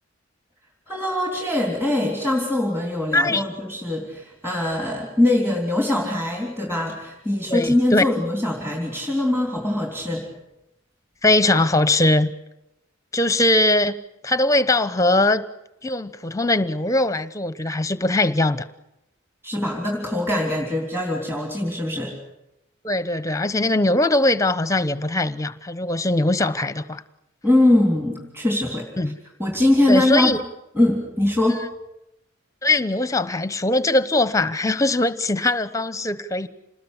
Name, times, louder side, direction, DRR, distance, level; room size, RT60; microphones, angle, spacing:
voice 1, 0.9-10.3 19.4-22.1 27.4-28.9 29.4-30.4 30.8-31.6, left 1 dB, 10° right, 0 dB, 3.6 m, -22 dB
voice 2, 3.1-3.4 7.5-8.0 11.2-12.3 13.1-13.9 14.2-15.4 15.8-18.7 22.8-27.0 29.0-29.2 29.9-30.4 31.5-31.6 32.6-36.5, left 2 dB, 15° left, 14 dB, 0.9 m, -21 dB
27.5 x 20.5 x 8.3 m, 0.88 s
head